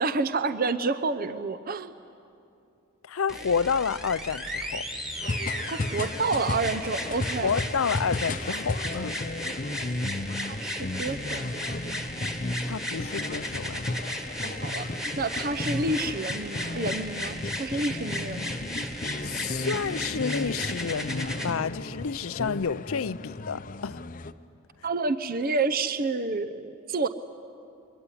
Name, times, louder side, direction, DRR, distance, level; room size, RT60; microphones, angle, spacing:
voice 1, 0.0-1.9 5.7-7.5 10.6-11.7 14.4-14.9 15.2-18.5 24.8-27.1, right 3 dB, 45° right, 0.7 m, -29 dB
voice 2, 3.0-4.9 7.4-9.2 12.6-13.9 19.2-24.0, left 6 dB, 75° left, 0.6 m, -30 dB
sound 1, 3.3-21.5 22.5-22.6, left 1 dB, ahead, 1.7 m, -35 dB
sound 2, 5.2-24.3, left 2 dB, 40° left, 0.7 m, -34 dB
25.5 x 23.0 x 9.9 m
head